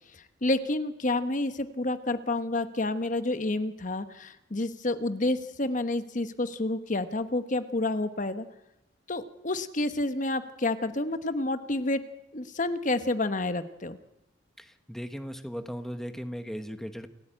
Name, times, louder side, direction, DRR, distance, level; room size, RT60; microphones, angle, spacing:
voice 1, 0.1-8.5 9.1-12.0 12.3-14.0, left 2 dB, 40° left, 11 dB, 1.1 m, -29 dB
voice 2, 14.6-17.1, equal, ahead, 9 dB, 1.1 m, -37 dB
28.5 x 14.5 x 8.9 m, 0.88 s
head